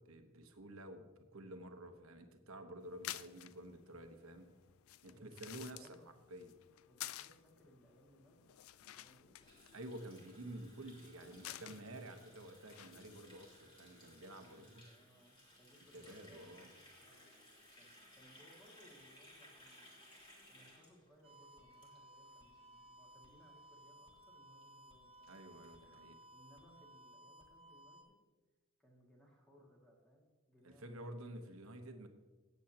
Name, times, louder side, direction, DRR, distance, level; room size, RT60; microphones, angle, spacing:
voice 1, 0.0-4.5 5.0-5.9 6.3-6.5 9.7-14.8 15.9-16.7 25.3-26.2 30.6-32.1, right 1 dB, 70° right, 6 dB, 1.1 m, -51 dB
sound 1, 2.8-13.6, left 14 dB, 70° left, 0.3 m, -53 dB
voice 2, 5.1-6.1 6.8-9.4 11.1-12.0 14.2-17.4 17.7-20.0 20.5-25.4 26.3-28.2 28.8-32.1, equal, 5° left, -2 dB, 2.1 m, -66 dB
Water tap faucet, 9.4-22.4 22.7-22.9 23.2-23.6 23.8-23.9 24.1-24.2 24.6-24.7 24.9-26.0, left 1 dB, 25° left, 2.9 m, -62 dB
sound 2, 21.2-28.0, right 1 dB, 25° right, 1.7 m, -60 dB
17.0 x 8.2 x 2.9 m, 1.3 s
head